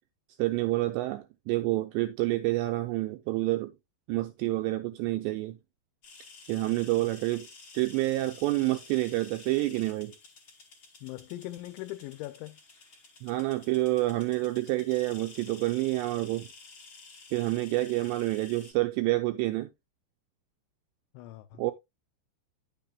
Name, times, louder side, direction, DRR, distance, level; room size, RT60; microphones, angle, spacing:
voice 1, 0.4-3.7 4.1-5.6 6.5-7.5 7.7-10.1 13.2-16.5 17.3-19.7 21.6-21.7, right 18 dB, 85° right, 2.5 m, -28 dB
sound 1, 6.0-18.7, left 4 dB, 50° left, 1.5 m, -52 dB
voice 2, 11.0-12.6 21.1-21.6, left 17 dB, 80° left, 2.8 m, -40 dB
10.0 x 7.1 x 2.3 m
omnidirectional pair, 5.5 m